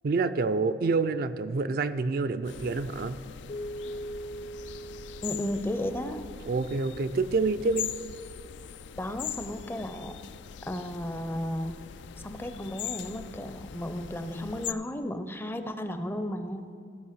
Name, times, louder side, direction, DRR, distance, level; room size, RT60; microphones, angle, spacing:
voice 1, 0.0-3.2 6.4-7.9, right 3 dB, 55° right, 10 dB, 0.4 m, -27 dB
sound 1, 2.4-14.7, left 9 dB, 85° left, 0.4 m, -41 dB
Keyboard (musical), 3.5-6.5, right 1 dB, 60° left, 0.8 m, -41 dB
voice 2, 5.2-6.3 9.0-10.2 10.7-11.7 12.2-16.7, left 1 dB, 15° left, 9 dB, 0.5 m, -34 dB
14.0 x 5.4 x 6.5 m, 2.4 s
head